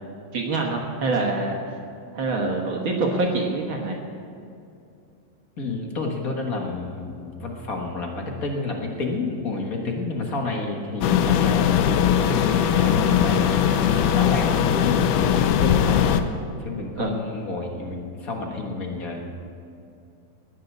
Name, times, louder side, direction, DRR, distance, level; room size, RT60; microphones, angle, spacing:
voice 1, 0.3-1.6 2.1-4.0 17.0-17.1, right 3 dB, 50° right, 0 dB, 1.6 m, -25 dB
voice 2, 5.6-13.8 14.1-16.1 16.6-19.2, left 3 dB, 55° left, 1 dB, 0.9 m, -30 dB
sound 1, 11.0-16.2, left 9 dB, 85° left, 2.2 m, -20 dB
19.5 x 6.7 x 8.3 m, 2.6 s
omnidirectional pair, 3.7 m